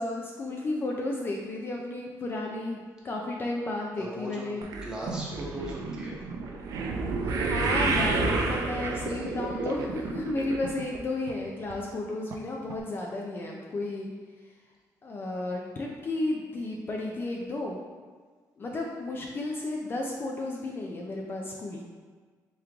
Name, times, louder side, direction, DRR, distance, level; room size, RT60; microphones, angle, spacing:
voice 1, 0.0-2.8 3.0-4.6 7.2-14.1 15.0-17.8 18.6-21.8, left 2 dB, 35° left, -1 dB, 0.4 m, -33 dB
voice 2, 4.0-4.5 4.8-6.2 9.1-9.7 15.3-15.4, right 1 dB, 10° right, -5 dB, 0.9 m, -39 dB
sound 1, 4.6-11.0 11.3-11.7 12.3-12.4 12.7-12.8, right 3 dB, 65° right, 0.4 m, -30 dB
3.6 x 3.1 x 3.5 m, 1.5 s
cardioid pair, 125°, 7 cm